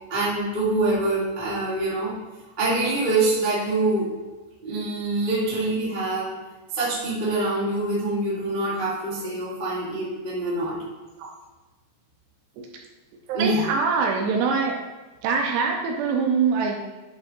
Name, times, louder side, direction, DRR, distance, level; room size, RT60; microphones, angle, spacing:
voice 1, 0.1-2.2 2.6-4.1 4.6-6.4 6.7-10.8 13.3-13.6, right 2 dB, 25° right, -8 dB, 1.0 m, -25 dB
voice 2, 13.3-14.8 15.2-16.8, right 5 dB, 80° right, 2 dB, 2.7 m, -23 dB
9.9 x 3.4 x 4.3 m, 1.2 s
omnidirectional pair, 5.2 m